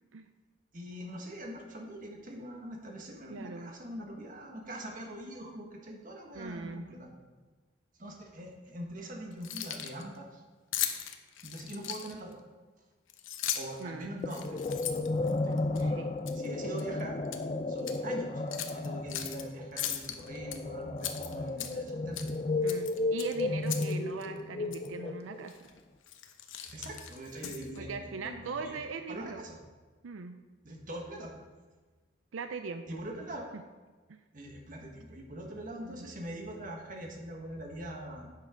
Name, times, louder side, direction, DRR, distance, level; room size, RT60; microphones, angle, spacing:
voice 1, 0.7-7.1 8.0-10.4 11.4-12.4 13.5-14.6 15.4-15.6 16.3-17.2 17.7-18.4 18.7-22.3 26.7-28.8 29.1-29.6 30.6-31.3 32.9-33.5 34.3-38.3, right 1 dB, 45° right, 1 dB, 1.5 m, -42 dB
voice 2, 3.3-3.7 6.3-6.8 13.8-14.2 15.7-16.1 22.6-25.7 27.7-29.4 30.0-30.4 32.3-33.0 33.5-33.6 34.1-34.2 35.8-36.1, right 4 dB, 90° right, 8 dB, 0.5 m, -40 dB
Keys jangling, 9.3-10.0 10.7-12.3 13.1-13.8 14.3-15.8 16.3-16.5 16.8-17.4 17.8-18.0 18.5-19.4 19.8-20.6 21.0-21.9 22.1-22.4 22.7-23.9 24.2-24.3 24.7-24.9 25.5-25.7 26.0-27.8, left 10 dB, 80° left, 0.8 m, -37 dB
sound 1, 14.2-25.6, left 2 dB, 30° left, 0.4 m, -33 dB
10.5 x 7.5 x 3.7 m, 1.3 s
head